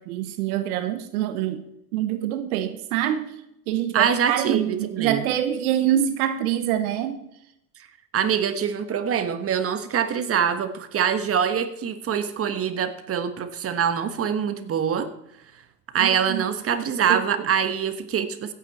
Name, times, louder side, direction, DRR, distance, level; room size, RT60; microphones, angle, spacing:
voice 1, 0.0-1.7 1.9-3.3 3.7-7.2 16.0-16.8 17.1-17.5, right 11 dB, 65° right, 10 dB, 1.2 m, -25 dB
voice 2, 3.9-5.2 8.1-15.1 15.9-18.5, right 8 dB, 30° right, 9 dB, 1.3 m, -24 dB
16.0 x 8.9 x 4.2 m, 0.79 s
hypercardioid pair, 100°, 47 cm